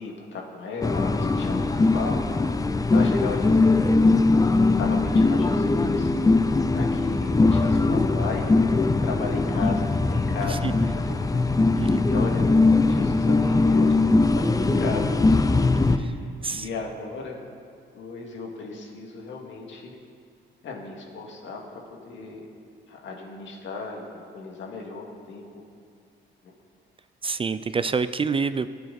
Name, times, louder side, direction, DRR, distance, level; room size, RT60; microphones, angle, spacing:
voice 1, 0.0-2.2 2.9-3.9 4.8-6.1 6.7-8.5 9.0-12.5 12.9-17.4 17.9-19.9 20.6-22.5 22.9-25.6 26.4-26.5, left 4 dB, 70° left, 0 dB, 2.2 m, -36 dB
sound 1, 0.8-16.0, left 3 dB, 15° left, 0.6 m, -21 dB
voice 2, 27.2-28.7, right 5 dB, 25° right, 13 dB, 0.4 m, -27 dB
17.5 x 9.3 x 4.2 m, 2.2 s
cardioid pair, 90°, 20 cm